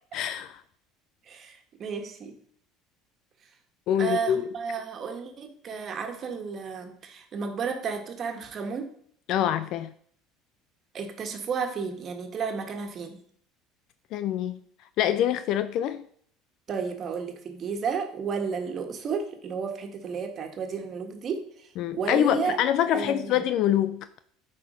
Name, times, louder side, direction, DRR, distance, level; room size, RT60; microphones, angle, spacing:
voice 1, 0.1-0.6 3.9-4.4 9.3-9.9 14.1-14.5 15.0-16.1 21.8-24.0, left 11 dB, 60° left, 12 dB, 0.4 m, -25 dB
voice 2, 1.3-2.3 4.0-8.9 10.9-13.2 16.7-22.6 22.9-23.4, right 6 dB, 45° right, 5 dB, 1.6 m, -32 dB
9.1 x 4.4 x 5.1 m, 0.62 s
hypercardioid pair, 75°, 0 cm